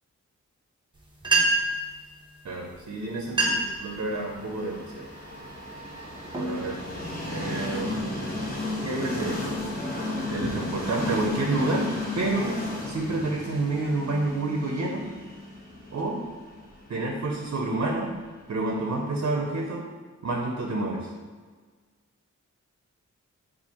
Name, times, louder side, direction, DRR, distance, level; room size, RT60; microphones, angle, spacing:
sound 1, 1.0-1.1 1.2-1.8 2.7-2.8 3.2-3.8 4.3-4.6 5.3-5.5 6.1-7.3, right 2 dB, 15° right, 0.8 m, -26 dB
voice 1, 2.4-5.1 6.3-6.8 7.3-8.4 8.8-9.6 10.3-12.6 12.9-15.1 15.9-16.2 16.9-18.1 18.5-19.9 20.2-21.1, right 2 dB, 55° right, 0 dB, 0.6 m, -29 dB
Train, 3.5-19.3, left 2 dB, 30° left, 1.0 m, -34 dB
7.0 x 2.5 x 2.9 m, 1.5 s
wide cardioid pair, 95°, 31 cm